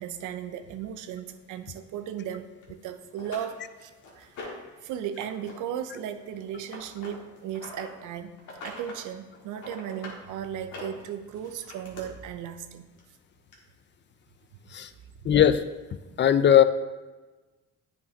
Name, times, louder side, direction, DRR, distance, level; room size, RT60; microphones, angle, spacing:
voice 1, 0.0-8.3 8.6-12.9 16.0-16.2, right 9 dB, 90° right, 9 dB, 0.6 m, -36 dB
sound 1, 2.6-2.7 3.2-4.7 5.1-5.5 5.8-7.9 8.4-9.0 9.3-10.2 10.6-12.0 13.0-13.1 13.5-13.6, left 3 dB, 75° left, 1.8 m, -43 dB
voice 2, 15.2-15.6 16.2-16.6, left 10 dB, 40° left, 12 dB, 0.4 m, -18 dB
9.3 x 5.3 x 2.8 m, 1.2 s
cardioid pair, 90°, 30 cm